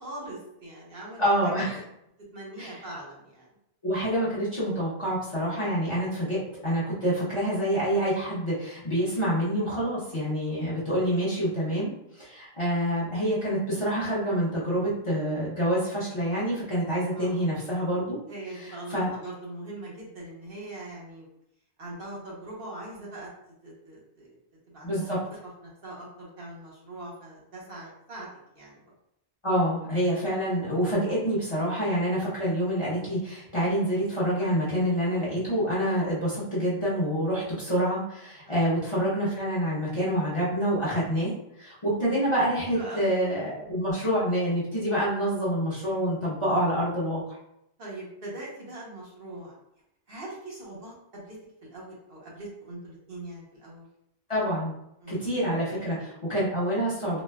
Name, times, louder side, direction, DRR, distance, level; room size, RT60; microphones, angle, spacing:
voice 1, 0.0-1.5 2.3-3.5 11.1-11.2 17.1-17.6 18.3-21.3 21.8-23.3 23.6-24.4 24.7-25.1 25.6-28.3 28.5-28.9 38.4-38.7 42.7-43.2 43.6-44.0 47.8-49.5 50.1-53.8 55.0-55.3 55.7-56.1, right 1 dB, 55° right, -5 dB, 1.1 m, -42 dB
voice 2, 1.2-1.8 2.6-2.7 3.8-18.2 18.9-19.1 24.8-25.2 29.4-47.4 54.3-54.7 55.1-57.2, equal, 30° left, -8 dB, 0.9 m, -27 dB
4.0 x 2.1 x 2.2 m, 0.79 s
omnidirectional pair, 1.1 m